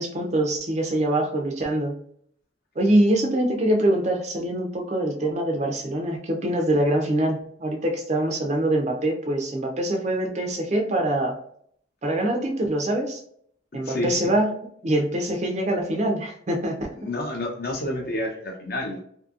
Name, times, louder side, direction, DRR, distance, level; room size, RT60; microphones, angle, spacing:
voice 1, 0.0-2.0 2.8-11.4 12.0-13.2 13.7-14.5 14.8-16.9, right 1 dB, 35° right, 1 dB, 0.4 m, -24 dB
voice 2, 17.0-19.0, left 1 dB, 50° left, 0 dB, 0.6 m, -29 dB
2.7 x 2.6 x 2.4 m, 0.64 s
head